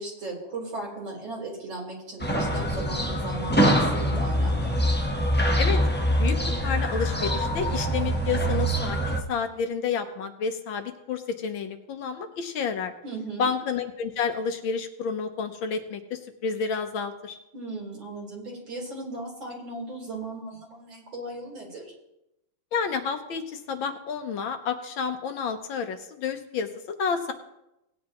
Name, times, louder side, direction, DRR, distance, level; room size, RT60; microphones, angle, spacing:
voice 1, 0.0-4.7 13.0-13.5 17.5-21.9, right 2 dB, 60° right, -3 dB, 4.4 m, -37 dB
sound 1, 2.2-9.2, equal, 10° left, 0.5 m, -24 dB
voice 2, 6.6-12.9 13.4-17.4 22.7-27.3, left 6 dB, 70° left, 6 dB, 1.5 m, -30 dB
18.5 x 10.0 x 3.0 m, 0.89 s
omnidirectional pair, 2.4 m